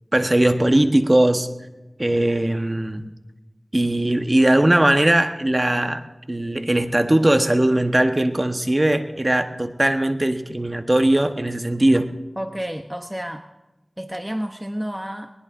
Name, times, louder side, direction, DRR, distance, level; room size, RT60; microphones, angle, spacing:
voice 1, 0.1-1.5 2.0-3.1 3.7-6.0 6.3-12.1, right 1 dB, 30° right, 7 dB, 1.0 m, -19 dB
voice 2, 12.4-13.4 14.0-15.3, equal, 10° right, 6 dB, 0.7 m, -30 dB
20.5 x 20.0 x 2.5 m, 1.1 s
wide cardioid pair, 50°, 0 cm